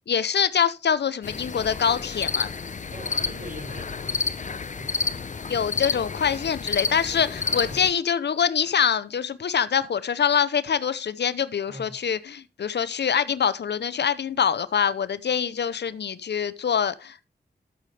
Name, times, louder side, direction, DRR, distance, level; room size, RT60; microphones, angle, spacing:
voice 1, 0.1-2.5 5.5-17.3, left 7 dB, 80° left, 0.7 m, -24 dB
sound 1, 1.2-7.9, left 5 dB, 45° left, 0.6 m, -30 dB
voice 2, 2.9-4.3 4.7-5.1 7.6-7.9 11.7-12.0, equal, 50° right, 6.1 m, -41 dB
12.5 x 8.4 x 3.3 m
wide cardioid pair, 70°, 17 cm